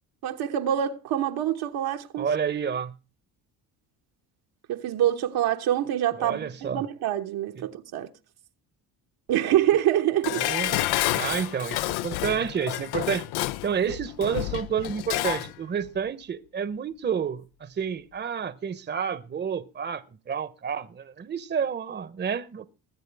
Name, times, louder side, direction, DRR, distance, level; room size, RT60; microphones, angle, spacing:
voice 1, 0.2-2.3 4.7-8.1 9.3-10.5, right 11 dB, 75° right, 1.2 m, -25 dB
voice 2, 2.2-2.9 6.2-6.8 7.6-7.7 10.4-10.8 11.1-13.3 13.6-22.7, right 7 dB, 30° right, 0.8 m, -30 dB
Dishes pots and pans, 10.2-15.5 15.9-16.0, left 16 dB, 85° left, 0.5 m, -29 dB
21.0 x 7.9 x 3.4 m
cardioid pair, 105°, 38 cm